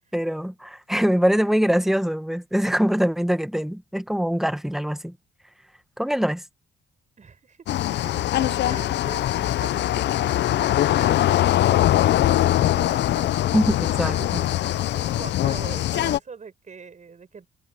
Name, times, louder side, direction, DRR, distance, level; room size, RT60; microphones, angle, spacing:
voice 1, 0.1-5.1 6.0-6.4 13.5-14.2, equal, ahead, 1.6 m, -23 dB
voice 2, 7.2-13.6 14.0-17.5, right 5 dB, 40° right, 5.4 m, -42 dB
sound 1, 7.7-16.2, left 13 dB, 65° left, 0.5 m, -22 dB
cardioid pair, 90°, 20 cm